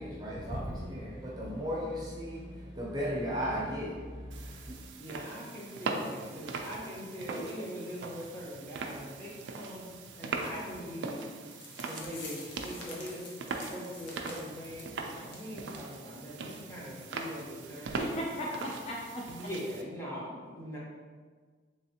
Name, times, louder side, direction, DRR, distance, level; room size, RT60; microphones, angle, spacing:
voice 1, 0.0-4.7, equal, 20° right, -5 dB, 0.6 m, -36 dB
voice 2, 0.7-1.1 5.0-9.9 10.2-11.3 11.8-18.2 19.3-20.8, equal, 15° left, -7 dB, 0.8 m, -42 dB
sound 1, 4.3-19.8, right 3 dB, 75° right, 0.3 m, -41 dB
sound 2, 11.2-11.3 11.5-14.9 15.3-15.5 15.8-15.9 16.4-16.5, left 3 dB, 75° left, 0.7 m, -47 dB
voice 3, 18.0-19.2, equal, 35° left, -3 dB, 0.3 m, -36 dB
3.5 x 3.3 x 2.8 m, 1.5 s
head